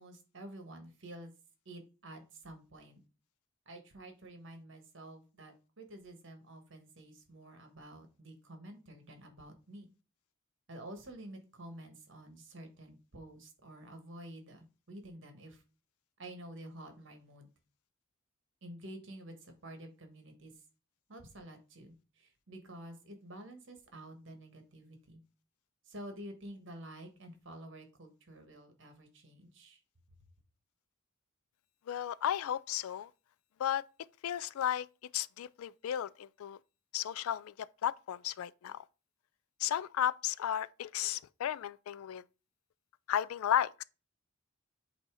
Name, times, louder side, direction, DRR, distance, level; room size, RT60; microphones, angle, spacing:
voice 1, 0.0-1.3 1.6-3.0 3.6-9.9 10.7-15.6 16.2-17.5 18.6-20.6 21.1-25.2 25.9-29.8, right 1 dB, 60° right, 1.3 m, -50 dB
voice 2, 31.9-33.1 33.6-33.8 34.2-34.9 35.1-36.6 36.9-38.8 39.6-42.2 43.1-43.8, left 10 dB, 80° left, 0.3 m, -34 dB
8.0 x 2.8 x 4.7 m
head